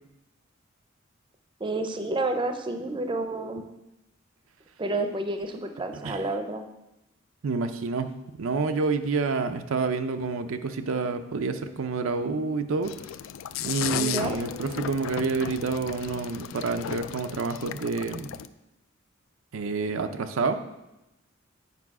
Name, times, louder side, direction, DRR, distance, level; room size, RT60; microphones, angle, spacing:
voice 1, 1.6-3.7 4.8-6.6 13.9-14.4, right 2 dB, 25° right, 6 dB, 0.5 m, -30 dB
voice 2, 5.9-6.2 7.4-8.1 8.4-12.9 13.6-18.3 19.5-20.6, right 4 dB, 85° right, 8 dB, 0.5 m, -28 dB
sound 1, 12.8-18.5, left 10 dB, 75° left, 0.3 m, -35 dB
8.3 x 4.8 x 4.7 m, 0.94 s
head